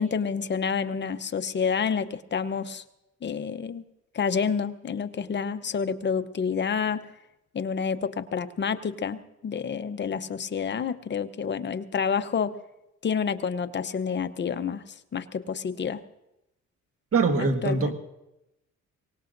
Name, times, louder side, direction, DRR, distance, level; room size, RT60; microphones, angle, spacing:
voice 1, 0.0-2.8 3.2-3.8 4.1-7.0 7.5-12.5 13.0-16.0 17.4-17.9, left 6 dB, 35° left, 10 dB, 0.8 m, -29 dB
voice 2, 17.1-17.9, right 4 dB, 50° right, 7 dB, 1.6 m, -23 dB
23.5 x 18.5 x 2.6 m, 0.92 s
cardioid pair, 90°, 30 cm